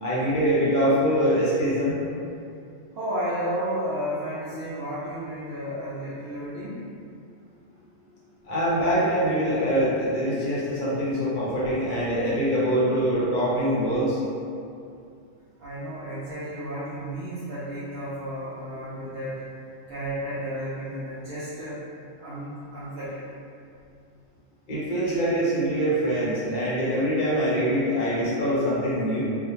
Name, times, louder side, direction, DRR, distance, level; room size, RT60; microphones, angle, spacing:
voice 1, 0.0-2.0 8.4-14.2 24.7-29.2, equal, 50° left, -8 dB, 0.8 m, -24 dB
voice 2, 2.9-6.9 15.6-19.4 19.9-21.8 22.2-23.3, equal, 65° right, -10 dB, 0.7 m, -32 dB
2.3 x 2.1 x 3.0 m, 2.5 s
omnidirectional pair, 1.2 m